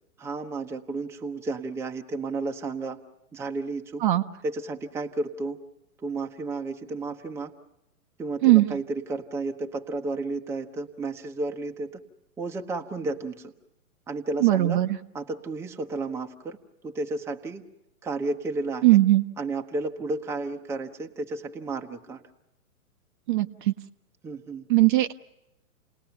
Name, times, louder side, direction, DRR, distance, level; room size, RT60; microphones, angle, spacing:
voice 1, 0.2-3.0 3.3-4.0 4.4-5.6 6.0-7.5 8.2-12.0 12.4-13.5 14.1-14.8 15.1-16.6 16.8-17.6 18.0-19.0 19.4-22.2 24.2-24.7, right 3 dB, 5° right, 3 dB, 0.8 m, -32 dB
voice 2, 8.4-8.8 14.4-15.0 18.8-19.2 23.3-23.7 24.7-25.1, right 17 dB, 35° right, 8 dB, 0.8 m, -19 dB
29.0 x 19.0 x 7.0 m, 0.91 s
hypercardioid pair, 135°, 43 cm